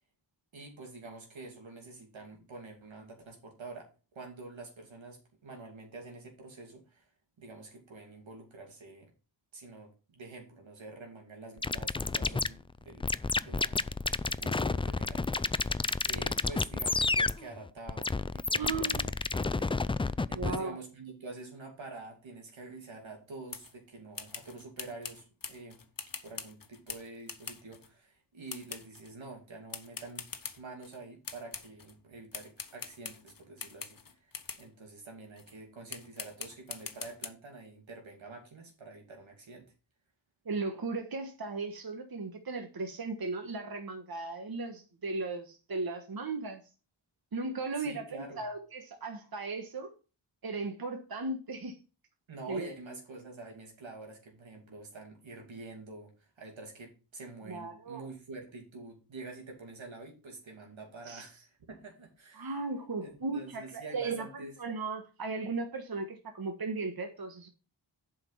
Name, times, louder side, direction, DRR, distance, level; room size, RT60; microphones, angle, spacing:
voice 1, 0.5-7.1 7.4-9.1 9.5-13.1 13.4-13.9 14.2-15.7 16.0-25.8 26.2-30.3 30.6-39.7 47.8-48.5 52.3-62.6 63.0-64.5, right 3 dB, 85° right, 2.7 m, -47 dB
sound 1, 11.6-20.6, left 3 dB, 15° left, 0.3 m, -30 dB
voice 2, 18.5-19.1 20.3-20.8 40.4-46.6 47.3-49.9 50.4-51.8 52.5-52.7 57.5-58.0 61.1-61.3 62.4-64.3 64.6-67.5, right 3 dB, 50° right, 1.4 m, -36 dB
sound 2, 23.5-23.7 24.1-27.9 28.5-29.1 29.7-31.0 31.2-31.9 32.3-34.7 35.4-35.5 35.9-37.3, left 5 dB, 45° left, 1.1 m, -43 dB
7.7 x 5.2 x 5.6 m
cardioid pair, 45°, 45 cm